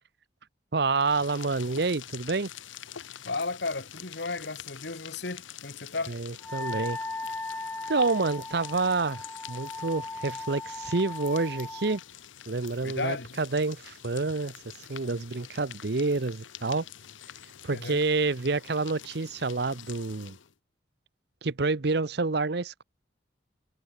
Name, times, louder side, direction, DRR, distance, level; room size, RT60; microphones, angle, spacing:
voice 1, 0.7-2.5 6.1-7.0 7.9-9.2 9.5-12.0 12.5-14.5 14.9-16.9 17.6-20.4 21.4-22.8, right 3 dB, 60° right, 0.8 m, -28 dB
sound 1, 0.9-20.5, left 10 dB, 85° left, 0.8 m, -47 dB
voice 2, 3.2-6.2 12.8-13.3 17.7-18.0, left 3 dB, 60° left, 1.5 m, -34 dB
Wind instrument woodwind instrument, 6.4-12.0, left 2 dB, 10° left, 0.4 m, -37 dB
head